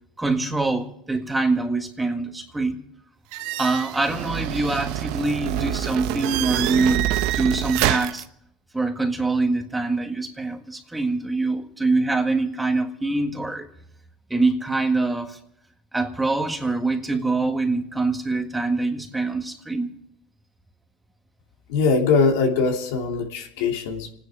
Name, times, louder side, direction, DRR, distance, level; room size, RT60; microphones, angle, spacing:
voice 1, 0.2-2.8 3.6-7.0 7.3-8.2 8.7-13.7 14.3-15.4 15.9-19.9, right 3 dB, 10° right, 4 dB, 1.8 m, -24 dB
sound 1, 3.3-8.2, right 14 dB, 70° right, 0.8 m, -26 dB
voice 2, 21.7-24.1, left 4 dB, 90° left, 1 dB, 3.0 m, -21 dB
29.0 x 10.0 x 4.9 m, 0.75 s
supercardioid pair, 125°, 0 cm